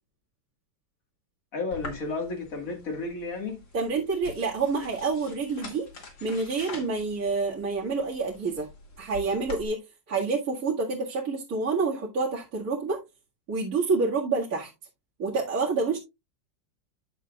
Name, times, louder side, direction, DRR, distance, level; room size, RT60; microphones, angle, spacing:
voice 1, 1.5-3.6, left 3 dB, 45° left, 2.2 m, -32 dB
sound 1, 1.7-9.7, left 3 dB, 80° left, 3.0 m, -45 dB
voice 2, 3.7-5.9 6.2-8.7 9.0-9.8 10.1-13.0 13.5-14.7 15.2-16.0, right 4 dB, 50° right, 2.3 m, -28 dB
10.0 x 7.2 x 2.4 m
omnidirectional pair, 2.0 m